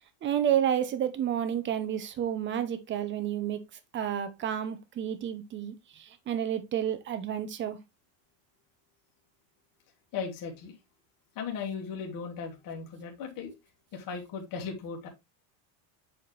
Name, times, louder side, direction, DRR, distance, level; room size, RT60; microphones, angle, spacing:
voice 1, 0.2-3.6 3.9-7.8, right 9 dB, 25° right, 0.7 m, -30 dB
voice 2, 10.1-10.7 11.4-13.5 13.9-15.1, left 6 dB, 40° left, 1.9 m, -37 dB
7.6 x 4.4 x 3.2 m
cardioid pair, 165°, 49 cm